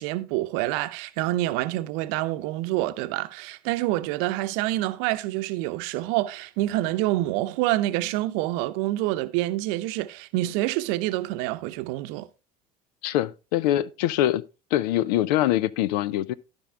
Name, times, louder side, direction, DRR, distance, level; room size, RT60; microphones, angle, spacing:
voice 1, 0.0-12.3, right 16 dB, 65° right, 0.8 m, -27 dB
voice 2, 13.0-14.4 14.7-16.3, left 13 dB, 70° left, 0.6 m, -23 dB
13.5 x 5.4 x 3.5 m
hypercardioid pair, 70°, 21 cm